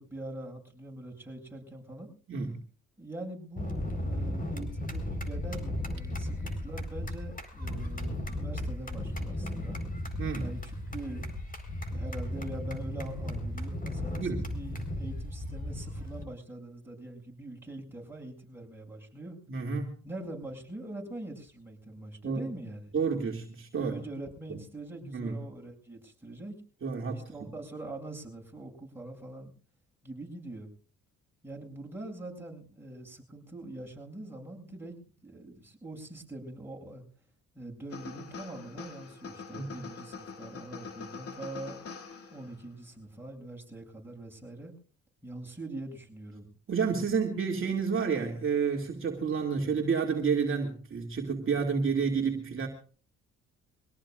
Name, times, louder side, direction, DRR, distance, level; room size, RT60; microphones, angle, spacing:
voice 1, 0.0-2.1 3.0-9.8 10.4-11.2 11.9-19.4 20.0-22.9 23.8-26.6 27.1-29.5 30.0-30.7 31.4-35.0 35.2-37.0 37.5-41.8 42.3-44.7 45.2-46.6, right 2 dB, 5° right, -1 dB, 7.5 m, -43 dB
sound 1, 3.6-16.2, left 1 dB, 30° left, 4.4 m, -35 dB
voice 2, 10.2-10.5 14.2-14.4 19.5-19.9 22.2-22.5 22.9-23.9 24.5-24.6 25.1-25.4 26.8-27.5 39.5-39.8 46.7-52.7, right 5 dB, 45° right, 1 dB, 2.5 m, -30 dB
sound 2, 37.9-42.7, left 5 dB, 50° left, 2.4 m, -44 dB
24.5 x 17.5 x 2.5 m, 0.39 s
cardioid pair, 90°, 30 cm